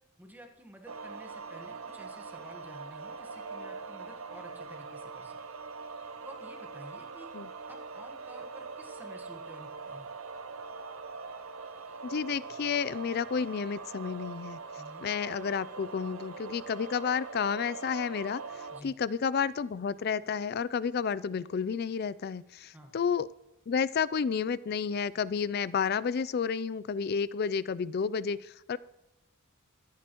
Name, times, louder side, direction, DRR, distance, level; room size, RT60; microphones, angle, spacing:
voice 1, 0.2-5.4 6.2-7.3 7.7-10.1 14.8-15.1 18.7-19.0 22.7-22.9, right 1 dB, 10° right, 3 dB, 1.4 m, -51 dB
sound 1, 0.9-18.8, right 4 dB, 75° right, 0.8 m, -43 dB
voice 2, 12.0-14.6 15.0-23.3 23.7-28.8, left 6 dB, 50° left, 18 dB, 0.4 m, -31 dB
26.0 x 9.5 x 3.0 m, 0.91 s
head